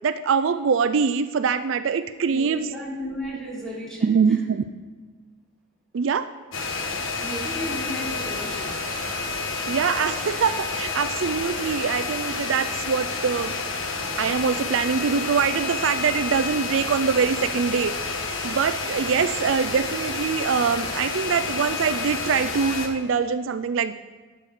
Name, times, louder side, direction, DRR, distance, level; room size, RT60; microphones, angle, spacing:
voice 1, 0.0-2.7 4.0-4.6 5.9-6.3 9.7-13.5 14.2-23.9, right 6 dB, 65° right, 12 dB, 0.4 m, -24 dB
voice 2, 2.3-4.4 6.9-8.7, equal, 5° left, -6 dB, 3.2 m, -34 dB
sound 1, 6.5-22.9, left 4 dB, 75° left, 1.4 m, -29 dB
12.0 x 8.4 x 4.9 m, 1.4 s
head